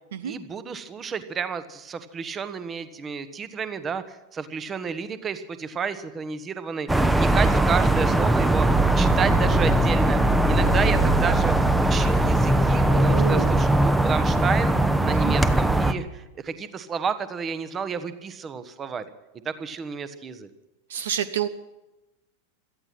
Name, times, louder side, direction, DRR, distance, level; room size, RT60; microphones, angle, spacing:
voice 1, 0.2-8.7 8.9-14.8 15.0-19.1 19.4-20.5, right 6 dB, 20° right, 12 dB, 1.3 m, -31 dB
sound 1, 6.9-15.9, right 1 dB, 5° right, 0.9 m, -20 dB
voice 2, 12.9-13.6 15.2-15.3 20.9-21.5, right 10 dB, 60° right, 15 dB, 0.7 m, -28 dB
17.5 x 13.5 x 6.1 m, 1.0 s
figure-of-eight pair, 90°, 0 cm